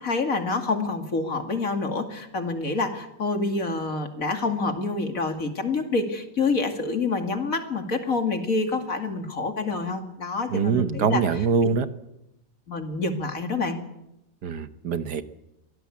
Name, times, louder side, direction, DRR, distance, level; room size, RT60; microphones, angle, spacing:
voice 1, 0.0-11.2 12.7-13.8, left 3 dB, 45° left, 6 dB, 2.7 m, -27 dB
voice 2, 10.5-11.9 14.4-15.2, right 6 dB, 65° right, 11 dB, 1.6 m, -24 dB
24.0 x 18.0 x 8.6 m, 0.86 s
omnidirectional pair, 2.0 m